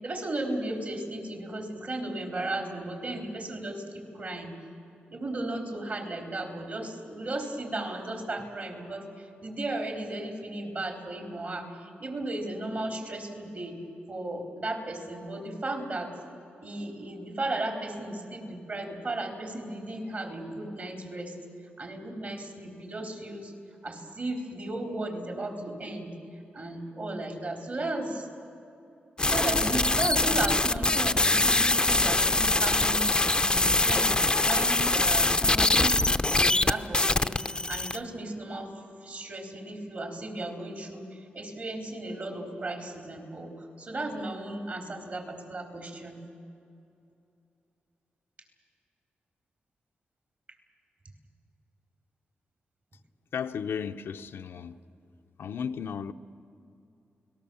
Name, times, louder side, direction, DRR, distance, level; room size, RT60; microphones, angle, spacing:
voice 1, 0.0-4.5 5.1-13.8 14.1-16.1 16.6-21.3 21.8-23.5 23.8-26.1 26.5-28.3 29.2-38.7 39.0-46.2, right 2 dB, 50° right, 4.1 m, -35 dB
sound 1, 29.2-38.0, left 2 dB, 20° left, 0.7 m, -23 dB
voice 2, 53.3-54.8 55.4-56.1, left 7 dB, 80° left, 0.8 m, -34 dB
29.0 x 19.0 x 7.1 m
cardioid pair, 75°, 4 cm